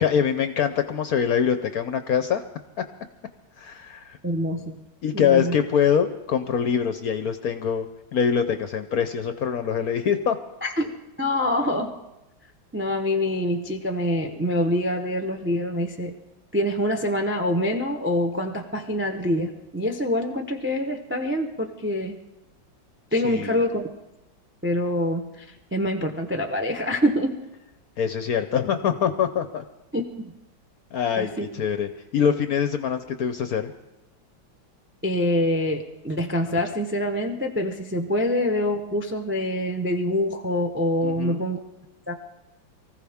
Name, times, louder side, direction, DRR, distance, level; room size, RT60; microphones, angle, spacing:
voice 1, 0.0-2.4 2.8-2.9 3.6-4.2 5.0-7.9 8.1-10.4 23.2-23.6 28.0-29.6 30.9-33.7 41.0-41.5, left 7 dB, 65° left, 9 dB, 0.9 m, -24 dB
voice 2, 4.2-4.8 5.1-5.5 10.6-10.9 11.2-12.0 12.7-16.2 16.5-22.2 23.1-23.9 24.6-25.5 25.7-27.4 29.9-30.3 31.2-31.5 35.0-41.6 42.1-42.2, left 1 dB, 20° right, 5 dB, 0.3 m, -25 dB
24.0 x 15.0 x 3.5 m, 0.94 s
omnidirectional pair, 2.2 m